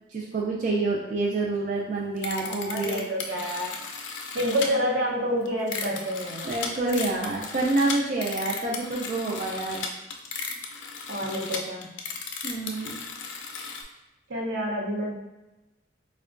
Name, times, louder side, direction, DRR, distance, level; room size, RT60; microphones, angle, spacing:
voice 1, 0.1-3.0 6.4-9.9 12.4-13.0, right 2 dB, 45° right, -3 dB, 0.3 m, -27 dB
sound 1, 2.2-4.7 5.5-13.8, left 5 dB, 85° left, 0.4 m, -35 dB
voice 2, 2.4-3.8 4.3-6.5 11.1-12.0 14.3-15.1, equal, 75° right, -2 dB, 0.7 m, -28 dB
4.3 x 2.2 x 2.4 m, 1.0 s
head